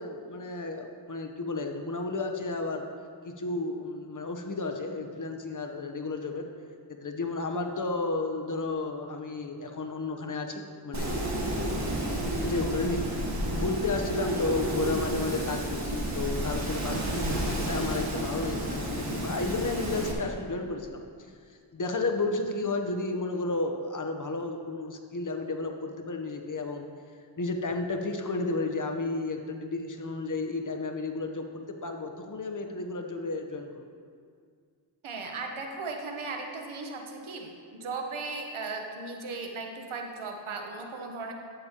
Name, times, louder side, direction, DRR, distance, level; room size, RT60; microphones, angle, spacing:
voice 1, 0.0-2.9 3.2-6.5 7.0-11.3 11.6-13.0 13.5-21.0 21.7-26.9 27.4-33.8, left 3 dB, 40° left, 4 dB, 0.9 m, -32 dB
Wind, 10.9-20.1, right 1 dB, 35° right, 1.7 m, -31 dB
voice 2, 35.0-41.3, right 3 dB, 90° right, 3 dB, 1.1 m, -37 dB
11.5 x 8.2 x 2.9 m, 2.1 s
cardioid pair, 60°, 47 cm